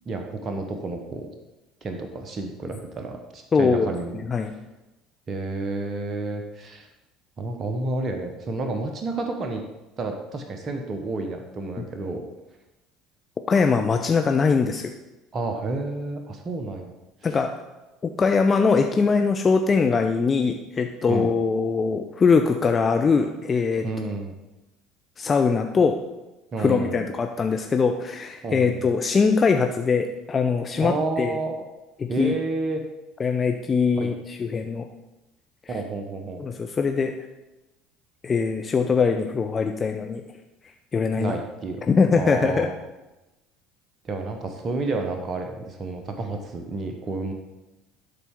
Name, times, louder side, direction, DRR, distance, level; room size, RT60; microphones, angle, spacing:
voice 1, 0.1-1.3 1.8-4.2 5.3-6.9 7.4-9.6 10.0-12.2 13.9-14.0 15.3-16.9 21.1-21.3 23.8-24.3 26.5-27.0 28.4-28.9 30.8-31.6 32.1-32.8 34.0-34.1 35.7-36.4 41.2-41.8 42.1-42.7 44.0-47.3, right 3 dB, 35° right, 4 dB, 1.0 m, -30 dB
voice 2, 3.5-4.5 13.5-14.9 17.2-17.5 18.2-23.8 25.2-26.0 26.6-31.4 32.2-32.3 33.2-34.8 35.7-35.8 36.4-37.1 38.2-40.2 40.9-41.4 41.9-42.7, left 5 dB, 30° left, 5 dB, 0.5 m, -22 dB
11.5 x 4.1 x 3.6 m, 1.0 s
hypercardioid pair, 70°, 0 cm